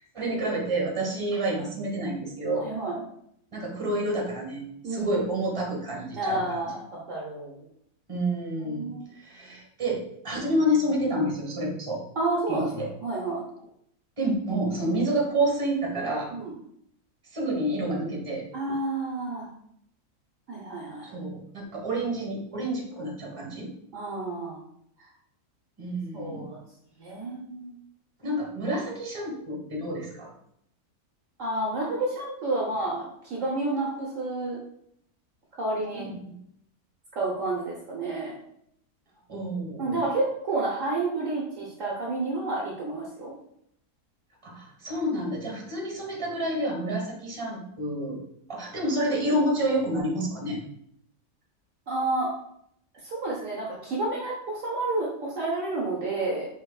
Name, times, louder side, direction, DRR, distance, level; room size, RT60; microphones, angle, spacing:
voice 1, 0.0-2.7 3.5-6.6 8.1-12.0 12.5-12.9 14.2-16.3 17.3-18.4 21.0-23.7 25.8-26.5 28.2-30.3 35.9-36.4 39.3-40.0 44.4-48.2 48.5-50.6, right 1 dB, 20° right, -1 dB, 1.3 m, -29 dB
voice 2, 2.6-3.0 4.8-5.2 6.1-6.8 7.1-7.5 8.6-9.0 12.2-12.7 13.0-13.4 14.8-15.0 16.3-16.5 18.5-19.5 20.5-21.1 23.9-24.6 26.1-26.6 27.0-27.7 31.4-34.6 35.6-36.1 37.2-38.3 39.8-43.3 49.3-49.4 51.9-52.3 53.0-56.5, right 2 dB, 60° right, -3 dB, 1.1 m, -30 dB
5.7 x 3.5 x 2.3 m, 0.71 s
omnidirectional pair, 1.6 m